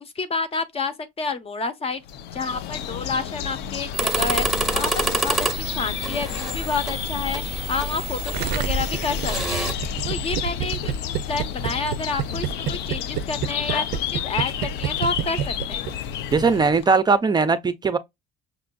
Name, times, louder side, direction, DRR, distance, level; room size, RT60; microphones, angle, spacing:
voice 1, 0.0-2.0 2.3-4.5 4.7-9.7 10.1-15.9, left 4 dB, 35° left, 0.7 m, -29 dB
sound 1, 2.0-16.9, left 9 dB, 90° left, 0.4 m, -31 dB
sound 2, 3.9-9.7, right 2 dB, ahead, 0.8 m, -27 dB
Gurgling, 8.3-15.9 16.2-16.3, right 9 dB, 80° right, 0.4 m, -28 dB
voice 2, 16.3-18.0, right 4 dB, 25° right, 0.5 m, -19 dB
6.0 x 2.4 x 2.2 m
cardioid pair, 110°, 17 cm